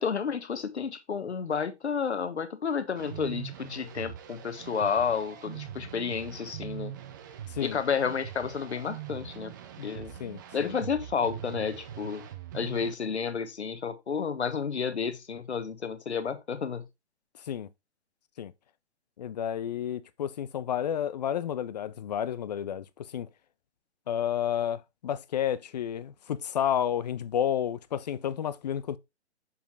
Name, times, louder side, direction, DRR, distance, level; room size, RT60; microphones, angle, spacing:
voice 1, 0.0-6.9 7.6-9.5 9.8-10.1 10.5-12.2 12.5-16.9, left 6 dB, 70° left, 1.4 m, -31 dB
sound 1, 3.0-12.9, right 11 dB, 20° right, 0.5 m, -42 dB
voice 2, 10.2-10.7 17.4-17.7 18.4-18.5 19.2-23.3 24.1-29.0, left 9 dB, 40° left, 0.5 m, -31 dB
6.9 x 5.0 x 3.4 m
figure-of-eight pair, 135°, 34 cm